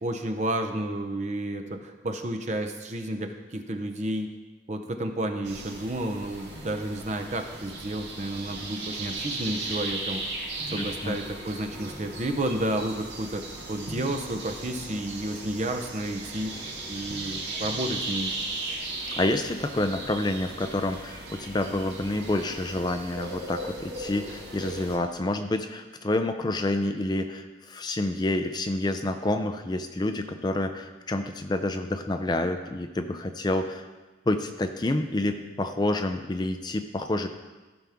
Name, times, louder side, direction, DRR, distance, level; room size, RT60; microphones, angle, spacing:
voice 1, 0.0-4.3 4.7-10.2 10.7-16.6 16.9-18.3, right 1 dB, 40° right, 6 dB, 0.8 m, -31 dB
sound 1, 5.4-25.0, right 2 dB, 70° right, 1.8 m, -37 dB
voice 2, 10.7-11.2 19.1-33.9 34.3-37.3, left 1 dB, 25° left, 7 dB, 0.4 m, -28 dB
15.0 x 5.9 x 3.6 m, 1.2 s
head